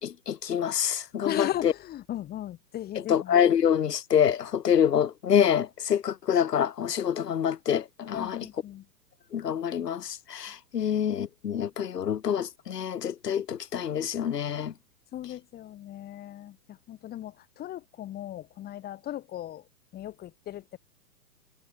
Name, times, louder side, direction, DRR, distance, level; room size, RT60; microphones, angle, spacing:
voice 1, 0.0-1.7 3.1-8.5 9.3-14.7, left 9 dB, 75° left, 5.2 m, -26 dB
voice 2, 1.2-3.4 8.1-8.8 10.8-11.0 15.1-19.6 19.9-20.8, left 12 dB, 20° left, 2.8 m, -37 dB
hypercardioid pair, 145°, 48 cm